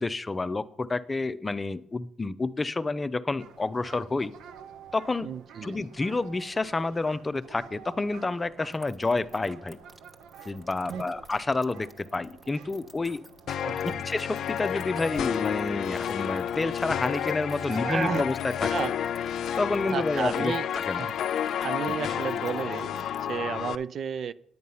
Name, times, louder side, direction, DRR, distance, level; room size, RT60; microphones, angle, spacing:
voice 1, 0.0-4.3 4.9-5.3 5.6-9.8 10.4-13.2 13.8-18.7 19.6-20.5 20.9-21.1 21.9-22.0, left 3 dB, 25° left, 14 dB, 0.6 m, -29 dB
sound 1, 3.4-22.9, right 6 dB, 90° right, 0.9 m, -51 dB
voice 2, 5.2-5.8 10.9-11.2 13.6-14.0 17.7-18.3 18.7-18.9 19.9-20.7 20.9-21.2 21.6-24.3, right 7 dB, 60° right, 16 dB, 0.5 m, -33 dB
sound 2, 8.7-23.4, right 1 dB, 15° right, 1.1 m, -53 dB
sound 3, 13.5-23.8, left 9 dB, 70° left, 0.5 m, -30 dB
9.4 x 9.4 x 5.5 m, 0.65 s
cardioid pair, 90°, 0 cm